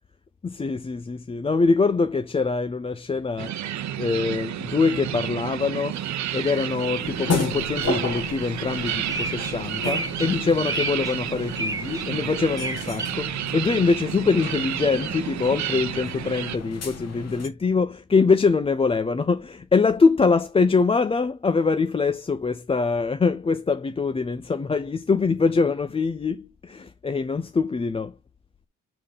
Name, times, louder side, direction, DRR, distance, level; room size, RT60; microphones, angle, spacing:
voice 1, 0.4-3.5 4.0-28.1, left 4 dB, 20° left, 0.4 m, -24 dB
sound 1, 3.4-16.6, right 11 dB, 65° right, 0.8 m, -31 dB
sound 2, 5.9-6.0 6.4-13.1, right 2 dB, 10° right, 1.1 m, -34 dB
sound 3, 7.0-17.5, left 3 dB, 55° left, 1.8 m, -33 dB
6.8 x 3.7 x 5.4 m
cardioid pair, 90°, 30 cm